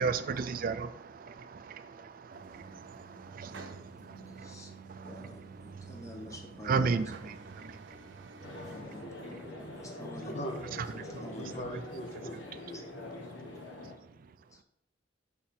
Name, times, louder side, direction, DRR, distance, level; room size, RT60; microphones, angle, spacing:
voice 1, 0.0-4.5 4.9-5.3 5.6-5.8 6.6-8.3 11.1-11.2, right 5 dB, 50° right, 0.4 m, -35 dB
sound 1, 2.3-8.8, right 4 dB, 75° right, 0.7 m, -50 dB
voice 2, 3.4-3.8 4.4-4.7 5.0-7.3 8.6-10.3 10.9-11.6 12.7-12.9 14.5-14.6, equal, 15° left, 1.0 m, -48 dB
sound 2, 8.4-13.9, left 1 dB, 80° left, 1.2 m, -44 dB
voice 3, 10.2-10.7 11.1-12.4 12.7-12.9, equal, 40° left, 0.8 m, -40 dB
5.8 x 3.8 x 4.2 m
head